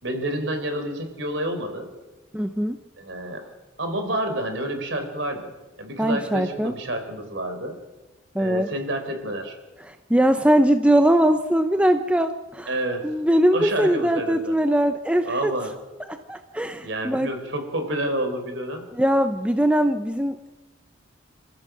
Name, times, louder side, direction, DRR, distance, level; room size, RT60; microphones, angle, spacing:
voice 1, 0.0-1.9 3.0-3.5 3.8-5.5 5.8-7.8 8.4-9.5 12.7-13.0 13.5-14.6 15.3-15.7 16.8-18.9, right 1 dB, 60° right, 6 dB, 4.2 m, -29 dB
voice 2, 2.3-2.8 6.0-6.7 8.3-8.7 9.8-12.7 13.0-15.5 16.1-17.3 18.9-20.5, right 1 dB, 5° right, 8 dB, 0.7 m, -21 dB
27.5 x 15.0 x 7.5 m, 1.1 s
head